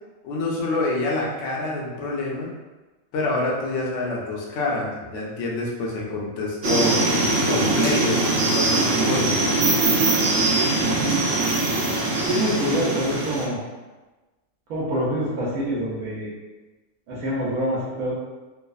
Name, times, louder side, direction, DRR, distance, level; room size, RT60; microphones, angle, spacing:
voice 1, 0.2-2.5 3.1-7.0 7.5-9.4, left 2 dB, 65° left, -3 dB, 0.9 m, -27 dB
sound 1, 6.6-13.5, right 2 dB, 60° right, 0.7 m, -21 dB
voice 2, 10.8-11.3 12.2-13.6 14.7-16.3 17.1-18.1, equal, 75° right, -6 dB, 1.1 m, -26 dB
3.0 x 2.0 x 2.3 m, 1.2 s
omnidirectional pair, 1.5 m